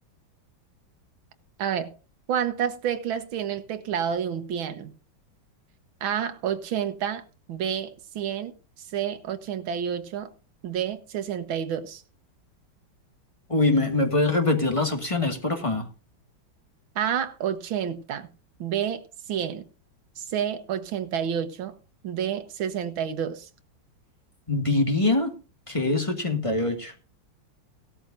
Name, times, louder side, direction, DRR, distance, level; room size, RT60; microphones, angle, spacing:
voice 1, 1.6-1.9 2.3-4.9 6.0-7.2 7.5-8.5 8.9-10.3 10.6-12.0 17.0-18.3 18.6-19.6 20.2-21.7 22.0-23.5, right 9 dB, 85° right, 1.9 m, -29 dB
voice 2, 13.5-15.9 24.5-25.3 25.7-26.9, left 2 dB, 15° left, 1.8 m, -23 dB
17.0 x 13.0 x 2.6 m
omnidirectional pair, 2.1 m